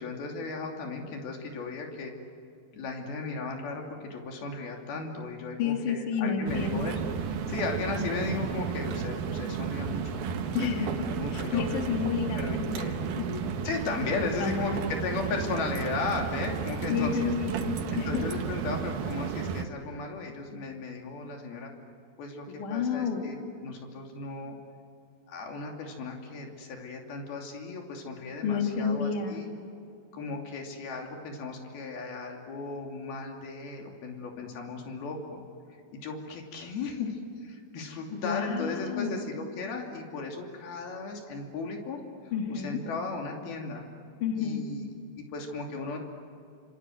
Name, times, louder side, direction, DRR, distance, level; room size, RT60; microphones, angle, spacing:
voice 1, 0.0-2.1 2.7-7.0 7.3-11.6 12.4-13.0 13.6-17.2 17.9-21.7 22.2-23.4 23.6-24.5 25.3-29.5 30.1-35.4 35.9-42.0 42.5-43.8 44.3-46.0, left 3 dB, 90° left, 1 dB, 4.7 m, -36 dB
voice 2, 5.6-6.9 10.5-10.9 11.3-13.5 14.4-14.8 16.9-18.2 22.5-23.2 28.4-29.4 38.1-39.2 42.3-42.8 44.2-44.6, left 6 dB, 60° left, 3 dB, 3.6 m, -30 dB
sound 1, 6.5-19.6, right 7 dB, 80° right, 3.2 m, -33 dB
28.5 x 27.0 x 7.8 m, 2.4 s
omnidirectional pair, 4.2 m